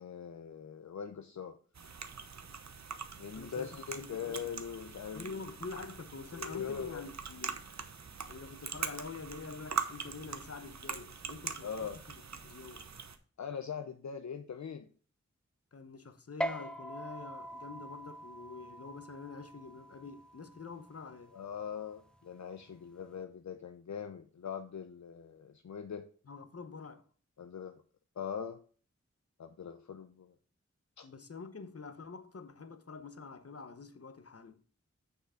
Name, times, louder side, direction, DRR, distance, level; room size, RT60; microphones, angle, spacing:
voice 1, 0.0-1.6 3.2-5.4 6.3-7.0 11.6-12.0 13.4-14.9 21.3-26.0 27.4-27.8 28.2-28.6 29.4-30.3 31.0-31.1, left 7 dB, 75° left, 0.6 m, -41 dB
sound 1, 1.7-13.2, right 5 dB, 70° right, 0.8 m, -43 dB
voice 2, 3.4-4.4 5.1-7.6 8.3-11.9 12.4-12.9 15.7-21.3 26.3-27.0 31.0-34.6, left 4 dB, 55° left, 0.9 m, -46 dB
sound 2, 16.4-23.2, equal, 5° left, 0.5 m, -44 dB
6.6 x 5.4 x 4.9 m
wide cardioid pair, 50°, 29 cm